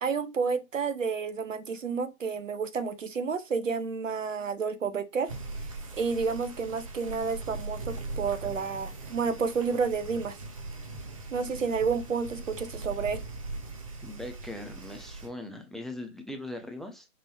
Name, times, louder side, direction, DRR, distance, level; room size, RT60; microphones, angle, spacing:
voice 1, 0.0-5.3 6.0-10.4 11.3-13.2, right 5 dB, 60° right, 0.9 m, -30 dB
sound 1, 5.3-15.3, right 3 dB, 25° right, 0.7 m, -40 dB
voice 2, 14.0-17.1, left 1 dB, ahead, 0.3 m, -40 dB
5.1 x 2.8 x 3.2 m
figure-of-eight pair, 150°, 42 cm